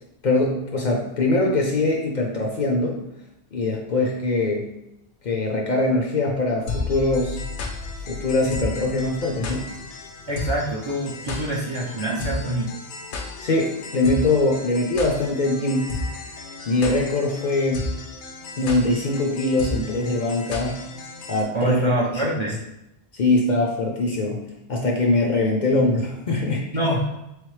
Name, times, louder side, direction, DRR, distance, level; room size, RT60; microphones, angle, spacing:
voice 1, 0.2-3.0 3.5-4.7 5.2-7.4 8.1-9.7 13.4-16.2 16.7-17.9 18.6-20.8 21.3-22.3 23.1-26.7, left 2 dB, 50° left, 0 dB, 0.6 m, -22 dB
sound 1, 6.7-21.4, left 3 dB, 80° left, 0.9 m, -33 dB
voice 2, 10.3-12.7 21.5-22.6 26.7-27.1, right 1 dB, 40° right, -3 dB, 0.4 m, -25 dB
3.6 x 3.3 x 3.1 m, 0.88 s
omnidirectional pair, 1.1 m